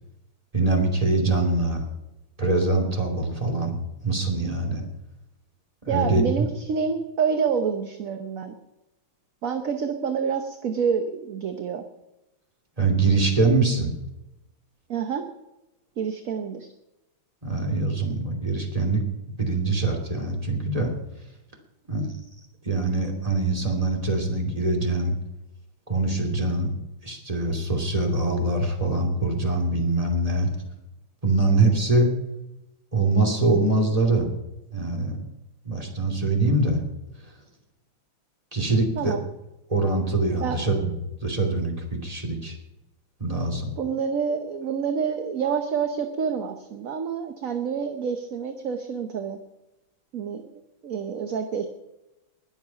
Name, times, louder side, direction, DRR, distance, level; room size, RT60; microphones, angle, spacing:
voice 1, 0.5-1.8 2.4-4.8 5.8-6.5 12.8-13.9 17.4-19.0 19.4-20.9 21.9-22.1 22.6-25.1 25.9-26.7 27.0-30.5 31.2-32.1 32.9-34.3 34.7-35.2 35.6-36.8 38.5-39.2 39.7-41.0 41.2-42.5 43.2-43.7, right 2 dB, 15° right, 1 dB, 2.8 m, -23 dB
voice 2, 5.9-8.5 9.4-11.8 14.9-15.2 16.0-16.7 39.0-39.2 40.4-40.6 43.8-49.4 50.1-50.4 50.8-51.7, right 6 dB, 50° right, 6 dB, 1.1 m, -27 dB
20.5 x 7.3 x 5.7 m, 0.95 s
omnidirectional pair, 2.2 m